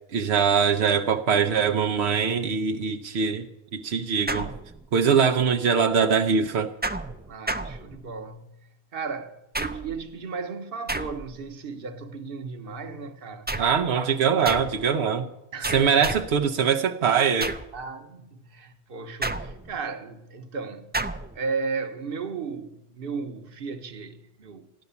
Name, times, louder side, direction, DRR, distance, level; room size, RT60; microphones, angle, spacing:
voice 1, 0.1-3.5 3.7-4.5 4.9-6.7 13.6-15.3 15.7-17.6, right 6 dB, 90° right, 1.0 m, -22 dB
sound 1, 4.3-5.1 6.8-8.3 9.5-10.1 10.9-11.5 13.5-13.9 14.5-14.9 15.6-16.4 17.4-17.8 19.2-19.9 20.9-21.4, right 2 dB, 15° right, 0.3 m, -32 dB
voice 2, 7.3-13.5 15.5-16.0 17.7-20.9 21.3-24.7, right 4 dB, 60° right, 1.2 m, -35 dB
14.5 x 11.0 x 6.9 m
omnidirectional pair, 1.1 m